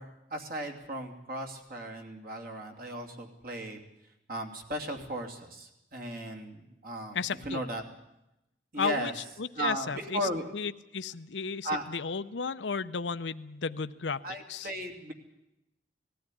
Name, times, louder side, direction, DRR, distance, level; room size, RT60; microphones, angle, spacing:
voice 1, 0.0-3.8 4.3-7.2 7.4-7.8 8.7-9.1 9.6-10.5 11.6-11.9 14.2-15.1, right 1 dB, 55° right, 2 dB, 2.8 m, -36 dB
voice 2, 7.1-7.6 8.8-14.7, left 5 dB, 85° left, 12 dB, 0.7 m, -34 dB
19.5 x 14.5 x 9.9 m, 0.88 s
head